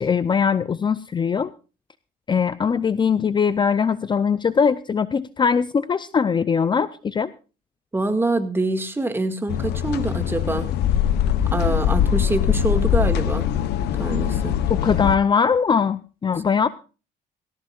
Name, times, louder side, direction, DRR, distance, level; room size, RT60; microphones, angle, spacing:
voice 1, 0.0-1.5 2.3-7.3 14.7-16.7, left 6 dB, 25° left, 15 dB, 0.6 m, -21 dB
voice 2, 7.9-10.7 11.5-13.5 14.0-14.5, right 2 dB, 15° right, 7 dB, 2.0 m, -25 dB
sound 1, 9.5-15.2, left 10 dB, 80° left, 0.9 m, -22 dB
18.0 x 17.0 x 2.4 m, 0.34 s
cardioid pair, 110°, 17 cm